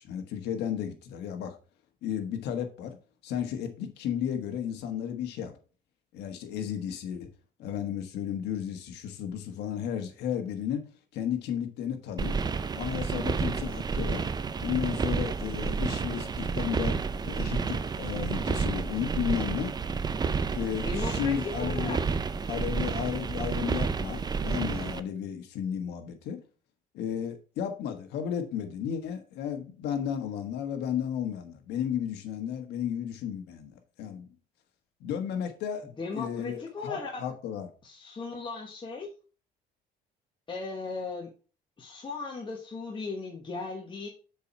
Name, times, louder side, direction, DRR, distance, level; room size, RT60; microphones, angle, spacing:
voice 1, 0.0-1.5 2.0-3.0 3.2-5.5 6.1-7.3 7.6-10.8 11.1-12.4 12.7-14.3 14.6-17.0 17.2-19.7 20.4-22.0 22.5-26.4 26.9-34.3 35.0-35.9 36.1-37.7, left 9 dB, 80° left, 1.4 m, -33 dB
sound 1, 12.2-25.0, right 5 dB, 25° right, 0.5 m, -30 dB
voice 2, 20.8-22.0 36.0-37.2 37.8-39.1 40.5-41.3 41.8-44.1, left 4 dB, 30° left, 1.4 m, -37 dB
6.9 x 4.8 x 4.4 m
cardioid pair, 110°, 17 cm